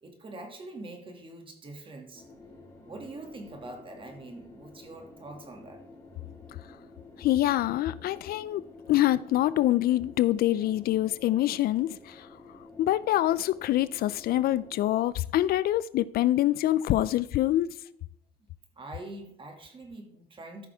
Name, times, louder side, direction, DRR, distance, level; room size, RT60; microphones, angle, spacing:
voice 1, 0.0-2.3 2.8-5.8 18.8-20.7, right 2 dB, 30° right, 2.3 m, -44 dB
sound 1, 2.1-14.8, left 2 dB, 20° left, 4.3 m, -51 dB
voice 2, 7.2-8.6 8.9-12.3 12.8-17.7, left 14 dB, 65° left, 0.4 m, -25 dB
14.0 x 5.9 x 3.5 m
cardioid pair, 110°, 17 cm